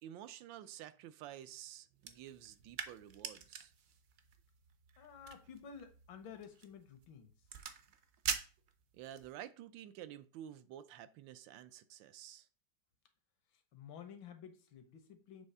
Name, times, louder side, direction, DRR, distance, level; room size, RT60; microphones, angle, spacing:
voice 1, 0.0-3.7 8.9-12.5, right 11 dB, 80° right, 1.2 m, -51 dB
sound 1, 2.0-9.3, right 7 dB, 60° right, 1.0 m, -46 dB
voice 2, 5.0-7.3 13.5-15.5, left 7 dB, 85° left, 1.7 m, -52 dB
7.1 x 3.2 x 5.4 m
omnidirectional pair, 2.1 m